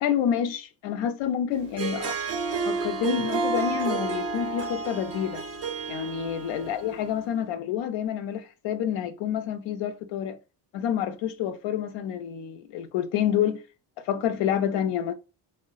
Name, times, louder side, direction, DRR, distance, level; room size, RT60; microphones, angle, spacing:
voice 1, 0.0-2.2 2.6-5.4 5.9-10.4 10.7-13.6 14.0-15.1, left 9 dB, 75° left, 0.6 m, -28 dB
Harp, 1.6-7.1, right 4 dB, 35° right, 0.5 m, -30 dB
3.7 x 2.2 x 2.3 m
cardioid pair, 145°, 46 cm